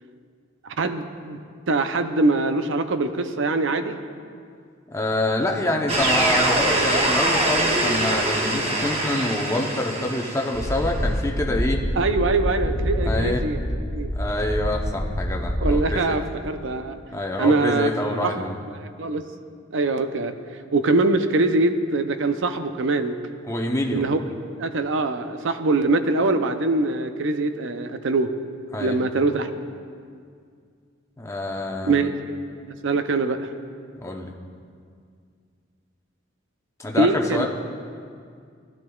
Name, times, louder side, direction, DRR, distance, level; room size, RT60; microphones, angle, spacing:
voice 1, 0.6-1.4 1.7-4.0 12.0-14.1 15.6-17.0 17.4-18.3 19.0-19.3 19.7-20.4 20.7-23.2 23.9-24.2 24.6-28.3 28.8-29.5 31.8-32.1 32.7-33.4 37.0-37.4, right 3 dB, 65° right, 8 dB, 0.6 m, -23 dB
voice 2, 4.9-11.8 13.0-13.4 14.2-16.2 17.1-18.6 23.5-24.0 28.7-29.0 31.2-32.1 34.0-34.3 36.8-37.4, left 1 dB, 15° left, 1 dB, 0.8 m, -26 dB
sound 1, 5.9-10.8, right 1 dB, 30° right, 1.0 m, -23 dB
sound 2, 10.5-15.8, equal, 30° left, 1.4 m, -26 dB
15.0 x 11.0 x 2.3 m, 2.2 s
head